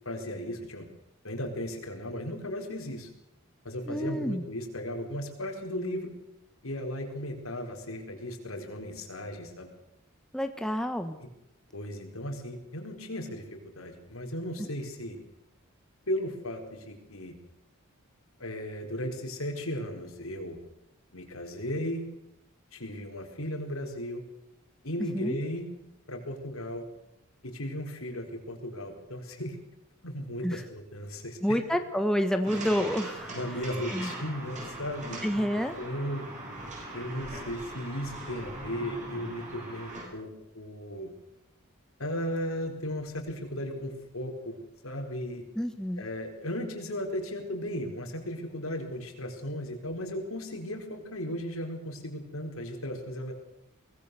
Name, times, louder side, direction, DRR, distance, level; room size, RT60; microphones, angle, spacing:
voice 1, 0.0-0.9 1.2-3.1 3.6-6.1 6.6-9.7 11.2-11.3 11.7-15.2 16.1-17.4 18.4-20.6 21.1-22.0 22.7-24.2 24.8-25.7 26.1-26.8 27.4-29.6 30.0-31.6 33.3-35.4 35.8-36.2 36.9-41.1 42.0-44.6 44.8-45.4 46.0-53.3, equal, 75° left, 4 dB, 4.5 m, -36 dB
voice 2, 3.9-4.4 10.3-11.2 14.6-14.7 25.1-25.4 30.4-30.6 31.4-33.6 33.9-34.1 35.2-35.7 45.5-46.0, equal, 5° left, 7 dB, 1.2 m, -29 dB
sound 1, 32.4-40.0, right 1 dB, 35° right, 8.0 m, -40 dB
24.0 x 19.0 x 6.9 m, 0.83 s
head